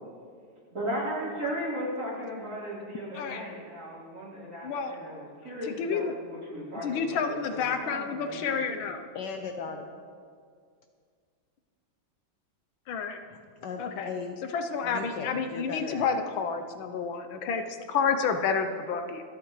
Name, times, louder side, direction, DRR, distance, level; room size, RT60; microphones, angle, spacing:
voice 1, 0.7-8.4 8.7-8.8, equal, 45° right, -7 dB, 4.4 m, -36 dB
voice 2, 4.6-5.0 5.6-6.2 6.8-9.1 12.9-13.2 13.8-14.1 14.5-17.6 17.9-19.2, left 6 dB, 80° left, 7 dB, 1.6 m, -30 dB
voice 3, 9.1-9.9 13.2-14.4 14.8-16.2, left 5 dB, 65° left, 5 dB, 1.2 m, -38 dB
26.0 x 8.7 x 3.2 m, 2.1 s
omnidirectional pair, 2.2 m